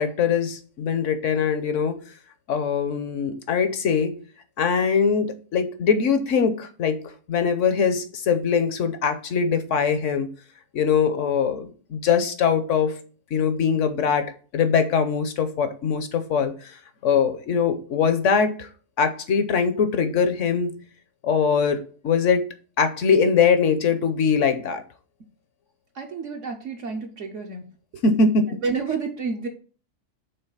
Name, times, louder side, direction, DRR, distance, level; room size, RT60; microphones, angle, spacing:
voice 1, 0.0-2.0 2.5-4.2 4.6-10.3 10.7-13.0 13.3-16.8 17.0-18.7 19.0-20.8 21.2-22.5 22.8-24.8 28.0-28.6, left 6 dB, 60° left, 1.0 m, -22 dB
voice 2, 25.9-27.7 27.9-28.0 28.5-29.5, right 4 dB, 60° right, 1.1 m, -30 dB
5.7 x 3.8 x 5.4 m
omnidirectional pair, 1.6 m